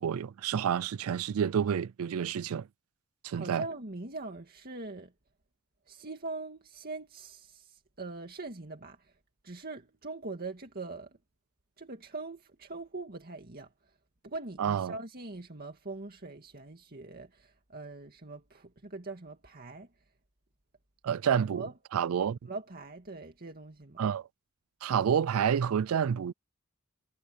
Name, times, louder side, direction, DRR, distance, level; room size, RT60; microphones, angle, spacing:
voice 1, 0.0-2.7 3.2-3.6 14.6-14.9 21.0-21.7 21.9-22.4 24.0-24.3 24.8-26.3, right 8 dB, 75° right, 0.4 m, -29 dB
voice 2, 3.3-5.1 5.9-9.0 9.4-11.1 11.8-13.7 14.2-19.9 21.3-21.7 22.5-24.0, right 3 dB, 45° right, 2.1 m, -42 dB
head